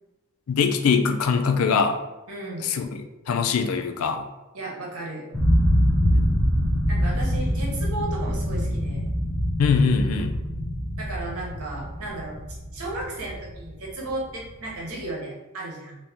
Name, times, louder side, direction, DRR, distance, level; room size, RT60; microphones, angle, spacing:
voice 1, 0.5-2.0 2.6-4.2 6.0-6.4 9.6-10.4, left 5 dB, 80° left, 7 dB, 0.4 m, -23 dB
voice 2, 2.3-2.7 4.5-5.2 6.9-9.1 11.0-12.4 12.7-16.0, right 2 dB, 80° right, -2 dB, 0.9 m, -34 dB
sound 1, 5.3-14.2, equal, ahead, 0.7 m, -24 dB
2.9 x 2.7 x 3.4 m, 1.1 s
head